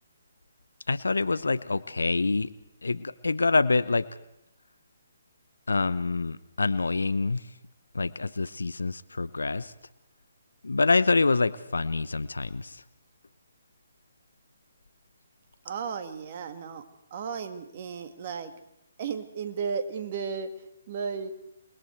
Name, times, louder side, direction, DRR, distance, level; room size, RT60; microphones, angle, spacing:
voice 1, 0.9-2.5 2.8-4.1 5.7-7.5 7.9-9.7 10.6-12.8, left 3 dB, 75° left, 17 dB, 0.9 m, -26 dB
voice 2, 15.6-16.8 17.1-18.5 19.0-20.5 20.9-21.3, right 6 dB, 40° right, 8 dB, 2.1 m, -34 dB
28.0 x 21.5 x 4.7 m, 0.79 s
figure-of-eight pair, 140°, 0 cm